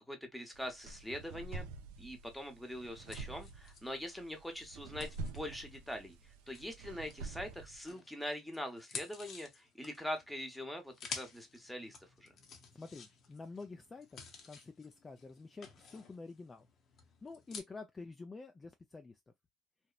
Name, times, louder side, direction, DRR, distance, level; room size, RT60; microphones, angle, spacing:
voice 1, 0.1-1.6 2.0-12.3, left 1 dB, 5° left, 0.9 m, -43 dB
sound 1, 0.5-7.9, right 3 dB, 85° right, 0.4 m, -47 dB
sound 2, 3.1-7.4 7.9-17.6, left 5 dB, 50° left, 0.7 m, -51 dB
voice 2, 12.7-16.7 17.2-19.2, left 3 dB, 25° left, 0.4 m, -49 dB
2.9 x 2.0 x 2.3 m
supercardioid pair, 95°, 0 cm